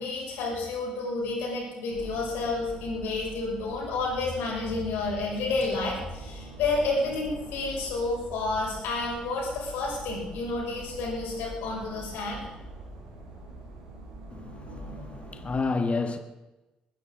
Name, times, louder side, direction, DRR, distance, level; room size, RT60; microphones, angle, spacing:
voice 1, 0.0-12.4, left 3 dB, 65° left, 6.4 m, -30 dB
sound 1, 1.9-15.7, right 2 dB, 75° right, 4.1 m, -44 dB
voice 2, 14.3-16.2, left 4 dB, 35° left, 1.7 m, -30 dB
21.5 x 15.0 x 3.9 m
figure-of-eight pair, 45°, 4 cm